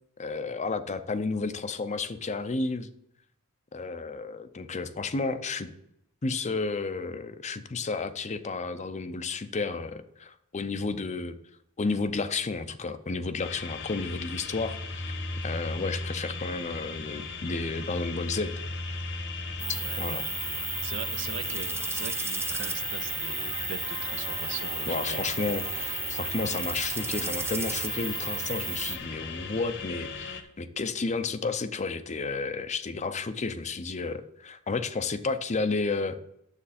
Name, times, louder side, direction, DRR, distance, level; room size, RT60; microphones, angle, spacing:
voice 1, 0.2-2.9 3.7-5.7 6.2-11.4 11.8-15.1 15.4-18.6 20.0-20.3 24.9-36.2, left 3 dB, 30° left, 0.5 m, -32 dB
sound 1, 13.4-30.4, left 4 dB, 55° left, 1.0 m, -37 dB
sound 2, 19.6-29.0, right 4 dB, 10° right, 0.6 m, -33 dB
voice 2, 20.8-25.3 26.3-26.6, right 7 dB, 55° right, 0.5 m, -41 dB
9.8 x 7.5 x 4.2 m
head